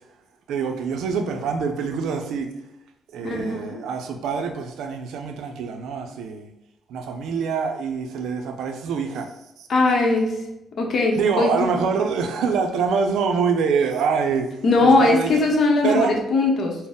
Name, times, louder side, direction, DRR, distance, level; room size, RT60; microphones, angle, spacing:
voice 1, 0.5-2.5 3.1-6.5 6.9-9.3 9.6-9.7 11.2-14.5 14.8-15.4 15.8-16.1, right 5 dB, 80° right, 5 dB, 0.4 m, -25 dB
voice 2, 3.2-3.8 9.7-10.4 10.8-11.7 14.6-16.8, left 3 dB, 55° left, 1 dB, 0.8 m, -20 dB
3.9 x 2.0 x 3.6 m, 0.90 s
cardioid pair, 90°, 0 cm